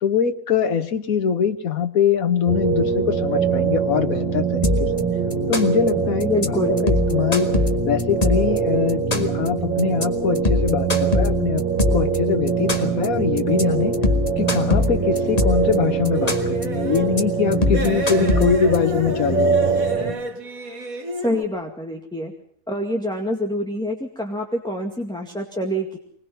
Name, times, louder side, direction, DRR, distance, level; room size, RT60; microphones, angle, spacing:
voice 1, 0.0-4.9 5.5-7.5 7.8-11.6 11.9-14.0 14.4-19.7, left 7 dB, 80° left, 9 dB, 1.6 m, -23 dB
sound 1, 2.5-20.1, right 5 dB, 40° right, 5.8 m, -23 dB
sound 2, 4.6-5.0 5.3-5.9 6.2-6.5 6.8-8.6 8.9-9.5 9.8-10.0 10.4-12.2 12.5-13.1 13.4-13.6 13.9-15.7 16.1-16.6 17.0-17.2 17.5-18.8, left 3 dB, 25° left, 2.0 m, -21 dB
voice 2, 6.2-6.9 21.2-22.3 22.7-26.0, left 1 dB, 5° left, 2 dB, 2.1 m, -26 dB
sound 3, 14.8-17.2 17.7-21.4, right 1 dB, 80° right, 2.4 m, -32 dB
25.0 x 20.0 x 5.8 m, 0.67 s
omnidirectional pair, 1.5 m